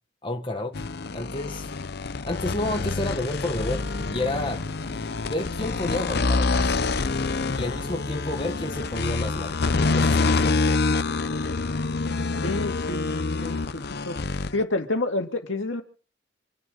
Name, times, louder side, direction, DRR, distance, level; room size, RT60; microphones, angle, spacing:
voice 1, 0.2-1.7 2.3-3.8 4.1-4.6 5.2-6.8 7.5-9.5 9.9-10.6, left 1 dB, 25° left, 1.4 m, -30 dB
sound 1, 0.7-14.6, left 3 dB, 55° left, 0.7 m, -26 dB
Thunderstorm / Rain, 3.6-9.6, equal, 40° right, 4.7 m, -44 dB
voice 2, 12.4-13.1 13.4-14.2 14.5-15.8, left 2 dB, 75° left, 2.3 m, -28 dB
27.0 x 11.0 x 3.8 m
head